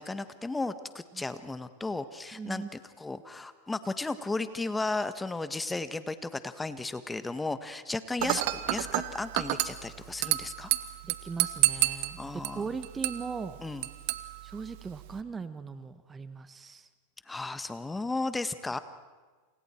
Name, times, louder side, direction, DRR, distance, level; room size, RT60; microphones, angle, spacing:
voice 1, 0.0-2.6 3.0-10.7 12.2-12.6 13.6-13.8 17.3-18.8, left 3 dB, 10° left, 11 dB, 1.5 m, -34 dB
voice 2, 2.3-2.7 8.2-8.4 11.0-12.2 12.5-13.6 14.4-16.9, right 5 dB, 20° right, 12 dB, 1.3 m, -39 dB
Dishes pots and pans / Glass, 8.2-15.2, right 17 dB, 60° right, 1.5 m, -31 dB
29.0 x 28.5 x 4.6 m, 1.4 s
hypercardioid pair, 100°, 0 cm